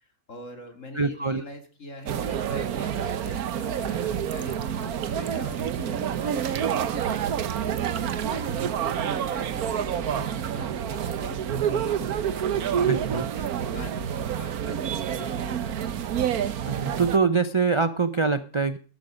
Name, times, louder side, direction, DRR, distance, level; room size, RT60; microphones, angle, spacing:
voice 1, 0.0-7.8 8.2-16.0, left 2 dB, 60° left, 5 dB, 3.0 m, -44 dB
voice 2, 1.0-1.4 12.9-13.3 16.6-18.8, right 4 dB, 35° right, 12 dB, 0.5 m, -24 dB
sound 1, 2.1-17.2, right 9 dB, 85° right, 1.4 m, -28 dB
sound 2, 2.5-2.6 2.8-8.5, right 7 dB, 60° right, 1.4 m, -46 dB
13.5 x 12.0 x 5.1 m, 0.41 s
omnidirectional pair, 1.5 m